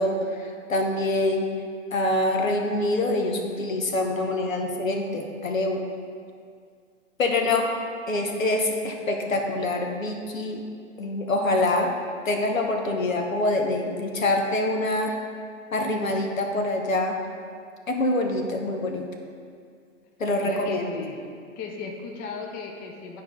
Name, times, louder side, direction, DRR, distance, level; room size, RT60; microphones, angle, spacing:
voice 1, 0.0-1.5 1.9-5.8 7.2-7.7 8.1-10.6 11.0-11.9 12.2-15.1 15.7-17.2 17.9-19.0 20.2-20.9, left 2 dB, 85° left, 3 dB, 1.1 m, -25 dB
voice 2, 20.4-21.2 21.6-23.2, left 4 dB, 25° left, 2 dB, 0.7 m, -36 dB
9.6 x 4.6 x 3.7 m, 2.2 s
hypercardioid pair, 115°, 39 cm